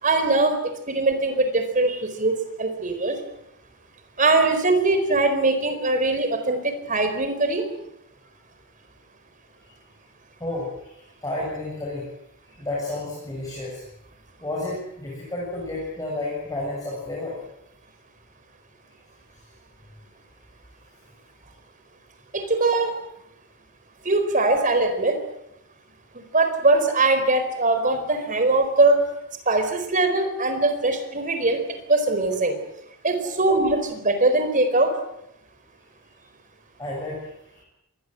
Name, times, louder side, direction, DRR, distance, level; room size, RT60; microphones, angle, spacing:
voice 1, 0.0-0.6 0.9-3.2 4.2-7.7 22.3-22.9 24.0-25.2 26.1-29.1 29.5-31.6 31.9-32.5 33.0-35.0, right 2 dB, 35° right, 8 dB, 4.4 m, -21 dB
voice 2, 10.4-12.0 12.6-13.8 14.4-17.4 33.2-33.3 36.8-37.3 37.5-37.7, left 2 dB, 15° left, -3 dB, 7.3 m, -31 dB
25.5 x 21.0 x 7.8 m, 0.83 s
head